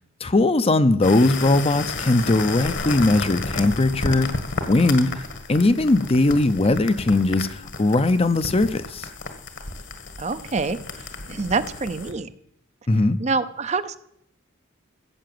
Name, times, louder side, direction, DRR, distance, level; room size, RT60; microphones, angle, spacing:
voice 1, 0.2-4.3 4.7-5.1 5.5-9.1 12.9-13.2, left 2 dB, 30° left, 12 dB, 0.6 m, -19 dB
sound 1, 1.0-12.1, left 3 dB, 65° left, 1.8 m, -32 dB
voice 2, 10.2-10.8 11.3-12.3 13.2-14.0, right 4 dB, 35° right, 12 dB, 0.6 m, -25 dB
15.5 x 7.8 x 7.8 m, 0.73 s
head